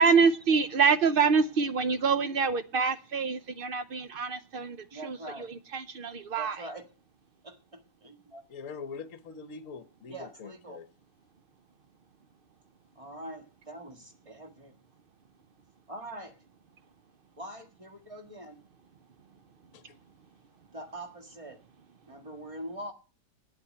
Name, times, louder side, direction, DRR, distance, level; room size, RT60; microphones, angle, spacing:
voice 1, 0.0-5.5 5.7-6.6, right 5 dB, 65° right, 0.5 m, -26 dB
voice 2, 4.9-5.5 6.4-6.8 7.4-8.4 10.1-10.8 13.0-14.7 15.9-16.4 17.4-18.6 20.7-21.6 22.1-22.9, right 1 dB, 20° right, 1.7 m, -43 dB
voice 3, 8.5-10.9 19.7-19.8, left 5 dB, 55° left, 1.3 m, -43 dB
8.7 x 8.6 x 9.5 m
omnidirectional pair, 1.8 m